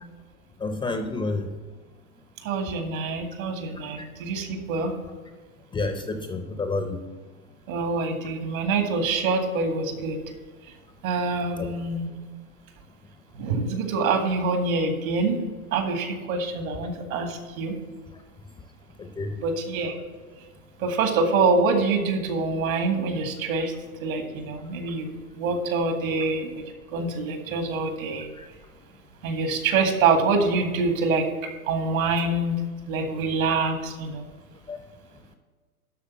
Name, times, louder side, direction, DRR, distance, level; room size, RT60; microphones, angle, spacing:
voice 1, 0.6-1.5 4.0-4.1 5.7-7.0 11.6-11.7 19.0-19.4 34.7-34.8, left 3 dB, 10° left, 6 dB, 0.5 m, -29 dB
voice 2, 2.4-4.9 7.7-10.2 11.0-12.1 13.3-15.4 15.7-17.8 19.4-19.9 20.8-23.7 24.0-25.1 25.3-26.6 26.9-28.3 29.2-31.3 31.7-32.6 32.9-34.2, right 3 dB, 70° right, 5 dB, 2.1 m, -25 dB
11.5 x 3.9 x 7.1 m, 1.4 s
hypercardioid pair, 115°, 44 cm